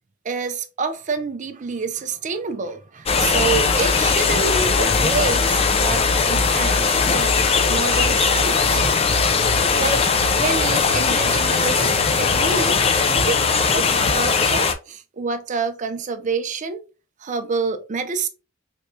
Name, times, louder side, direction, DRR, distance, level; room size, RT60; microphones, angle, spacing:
voice 1, 0.2-7.4 7.7-8.8 9.7-12.8 13.2-16.8 17.2-18.3, right 4 dB, 35° right, 0.4 m, -27 dB
sound 1, 3.1-14.7, left 5 dB, 30° left, 0.4 m, -19 dB
sound 2, 8.6-14.2, right 1 dB, 5° right, 1.2 m, -35 dB
3.4 x 3.0 x 2.7 m
head